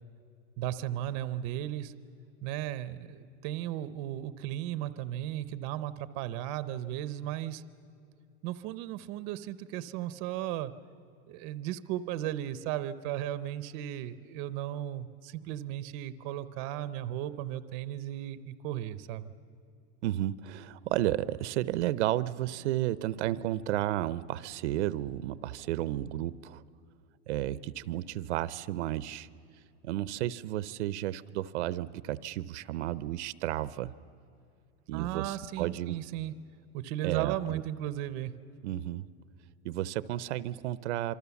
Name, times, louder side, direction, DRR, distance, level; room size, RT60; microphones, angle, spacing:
voice 1, 0.6-1.9 2.4-7.6 8.4-10.7 11.3-19.3 34.9-36.3 36.7-38.3, right 12 dB, 35° right, 14 dB, 0.7 m, -35 dB
voice 2, 20.0-26.6 27.3-29.3 29.8-33.9 34.9-36.0 37.0-37.6 38.6-39.1 39.6-41.1, right 14 dB, 75° right, 17 dB, 0.8 m, -32 dB
26.5 x 24.5 x 7.1 m, 2.7 s
supercardioid pair, 175°, 34 cm